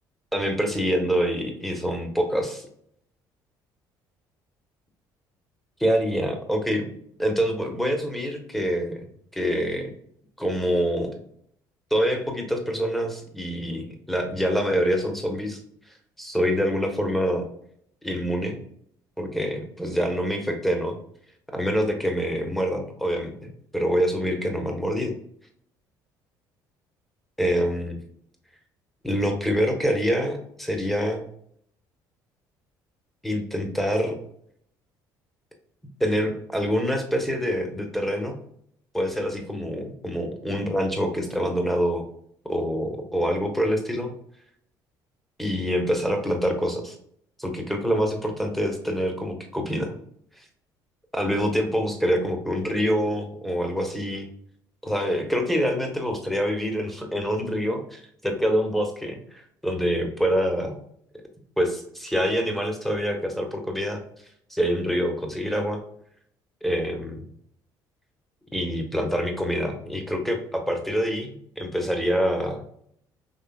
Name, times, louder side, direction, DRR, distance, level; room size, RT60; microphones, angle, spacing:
voice 1, 0.3-2.7 5.8-6.9 7.2-9.1 9.3-9.9 10.4-11.1 11.9-15.6 16.2-17.4 18.0-18.6 19.2-21.0 21.5-25.1 27.4-28.0 29.0-31.2 33.2-34.1 36.0-38.4 38.9-42.0 42.4-44.1 45.4-47.0 47.4-49.9 50.4-50.5 51.1-54.3 54.8-57.8 58.2-60.8 61.6-64.0 64.5-65.8 66.6-67.2 68.5-72.6, equal, ahead, 4 dB, 1.3 m, -26 dB
5.6 x 3.2 x 2.4 m, 0.68 s
hypercardioid pair, 65°, 10 cm